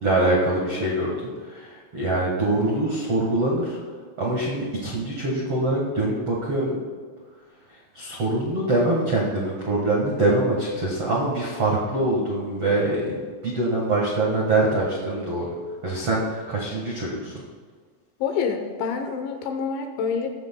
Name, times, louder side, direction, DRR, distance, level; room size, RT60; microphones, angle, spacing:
voice 1, 0.0-3.8 4.2-6.8 7.7-15.5 15.8-17.4, right 2 dB, 85° right, -4 dB, 1.3 m, -24 dB
voice 2, 18.2-20.3, left 6 dB, 75° left, 5 dB, 3.1 m, -27 dB
18.5 x 14.0 x 2.3 m, 1.5 s
omnidirectional pair, 5.6 m